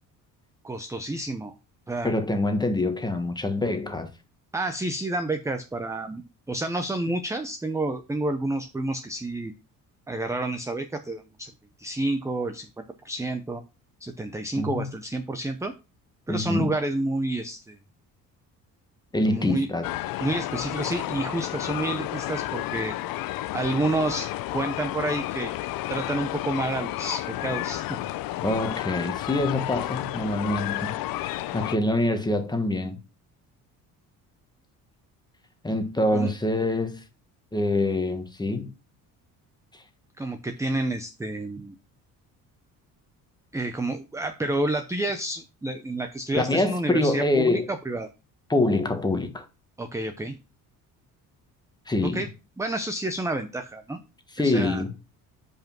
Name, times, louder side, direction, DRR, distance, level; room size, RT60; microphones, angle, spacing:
voice 1, 0.6-1.5 1.9-2.2 4.5-9.5 10.1-11.5 11.8-13.6 14.0-15.7 16.3-17.8 19.3-19.7 20.2-22.9 23.5-25.5 25.9-28.0 36.1-36.3 40.2-41.7 43.5-48.1 49.8-50.4 52.1-52.3 52.6-54.0 54.4-54.8, right 2 dB, 10° right, 0.7 m, -29 dB
voice 2, 2.0-4.1 14.6-14.9 16.3-16.7 19.1-19.9 28.4-33.0 35.6-37.0 37.5-38.7 39.7-39.8 46.3-47.7 48.5-49.4 51.9-52.3 54.3-54.9, left 2 dB, 10° left, 1.4 m, -25 dB
sound 1, 19.8-31.8, left 15 dB, 70° left, 0.6 m, -31 dB
5.3 x 5.0 x 5.9 m
cardioid pair, 105°, 36 cm